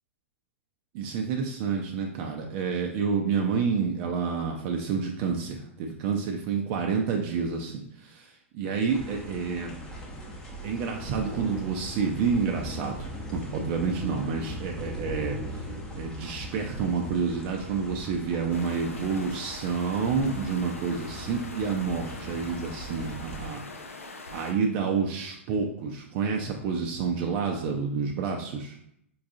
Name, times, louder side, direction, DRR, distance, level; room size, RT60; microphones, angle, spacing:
voice 1, 0.9-9.8 10.6-15.4 15.9-23.6 24.3-28.8, right 5 dB, 40° right, 2 dB, 0.4 m, -29 dB
sound 1, 8.9-23.5, equal, 10° left, 0.8 m, -39 dB
sound 2, 18.5-24.5, left 3 dB, 90° left, 0.4 m, -43 dB
4.6 x 2.4 x 2.5 m, 0.72 s
hypercardioid pair, 110°, 7 cm